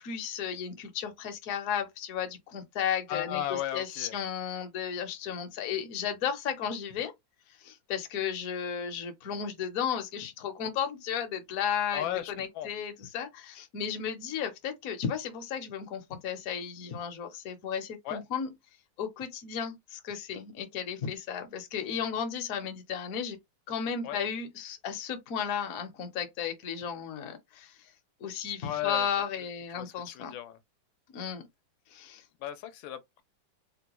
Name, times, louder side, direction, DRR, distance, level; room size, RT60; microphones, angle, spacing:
voice 1, 0.0-7.1 7.6-18.5 19.0-23.4 23.7-27.9 28.2-30.3 31.1-31.4 31.9-32.2, left 8 dB, 60° left, 1.0 m, -34 dB
voice 2, 3.1-4.2 11.9-12.7 18.0-18.2 24.0-24.2 28.6-29.2 29.7-30.6 32.4-33.2, left 12 dB, 80° left, 1.3 m, -35 dB
3.7 x 2.2 x 2.9 m
omnidirectional pair, 2.1 m